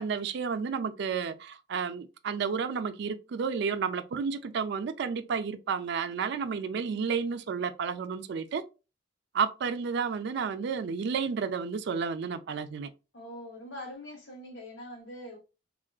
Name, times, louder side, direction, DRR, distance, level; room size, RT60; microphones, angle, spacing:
voice 1, 0.0-8.6 9.3-12.9, right 6 dB, 60° right, 0.3 m, -31 dB
voice 2, 13.1-15.4, left 1 dB, 65° left, 1.0 m, -43 dB
3.6 x 2.4 x 2.3 m
head